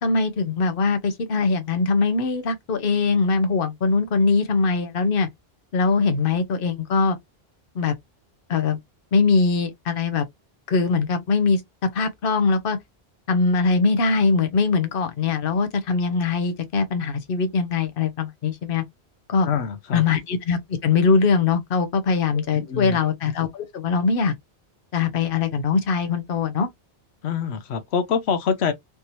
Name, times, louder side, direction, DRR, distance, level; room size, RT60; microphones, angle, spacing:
voice 1, 0.0-5.3 5.7-7.2 7.7-7.9 8.5-8.8 9.1-10.3 10.7-12.8 13.3-18.8 19.3-19.5 19.9-24.3 24.9-26.7, left 4 dB, 60° left, 1.0 m, -22 dB
voice 2, 19.4-20.1 22.3-23.0 27.2-28.7, left 6 dB, 85° left, 0.9 m, -25 dB
3.4 x 2.9 x 2.6 m
omnidirectional pair, 1.1 m